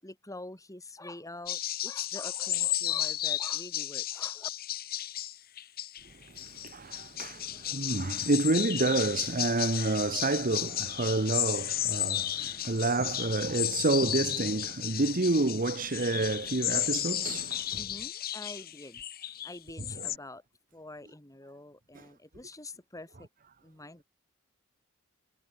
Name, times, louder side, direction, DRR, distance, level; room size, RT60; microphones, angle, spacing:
voice 1, 0.0-4.5 17.8-19.0 19.4-20.4 20.7-23.3 23.6-24.0, left 2 dB, 15° left, 2.6 m, -46 dB
sound 1, 1.5-20.2, left 12 dB, 45° left, 1.1 m, -33 dB
voice 2, 6.6-17.8 19.8-20.1, right 2 dB, 40° right, 1.1 m, -29 dB
head